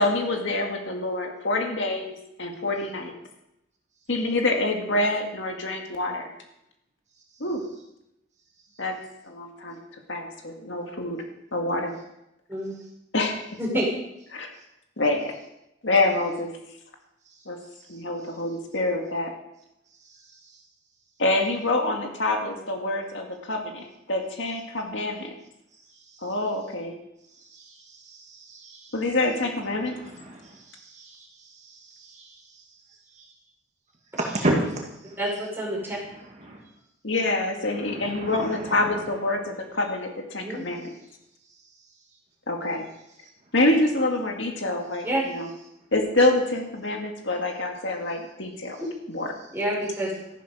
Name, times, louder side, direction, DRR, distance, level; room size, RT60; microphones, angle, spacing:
voice 1, 0.0-2.1 2.4-3.1 4.1-6.3 7.4-7.7 8.8-9.0 9.2-9.8 10.1-11.2 11.5-12.0 13.1-13.4 14.3-14.5 15.0-15.4 15.8-16.5 17.5-17.6 17.9-19.3 21.2-25.3 26.2-26.9 28.9-30.0 34.5-34.6 37.0-40.9 42.5-42.9 43.5-45.5 45.9-48.8 49.1-49.4, left 2 dB, 65° left, 2 dB, 2.0 m, -26 dB
voice 2, 13.6-13.9 35.2-36.0 40.4-40.6 45.0-45.2 48.8-48.9 49.5-50.1, right 1 dB, 10° right, -4 dB, 5.1 m, -28 dB
voice 3, 28.1-28.9 30.0-31.3 31.6-32.3 34.2-34.5 36.4-36.6 37.7-38.8, right 1 dB, 35° right, -1 dB, 2.1 m, -33 dB
14.5 x 11.5 x 5.0 m, 0.84 s
head